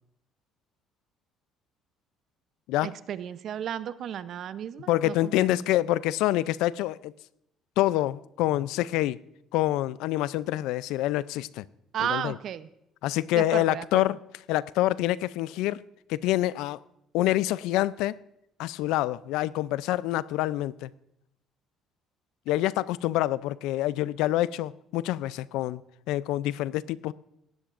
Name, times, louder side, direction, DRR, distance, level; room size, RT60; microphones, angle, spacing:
voice 1, 2.8-5.5 11.9-12.7 13.3-14.0, right 9 dB, 55° right, 0.6 m, -34 dB
voice 2, 4.9-7.1 7.8-9.2 9.5-11.6 12.0-12.4 13.0-14.2 14.5-15.8 16.1-16.8 17.1-18.2 18.6-20.9 22.5-25.8 26.1-27.1, left 15 dB, 85° left, 0.4 m, -26 dB
18.0 x 13.5 x 2.5 m
cardioid pair, 110°, 0 cm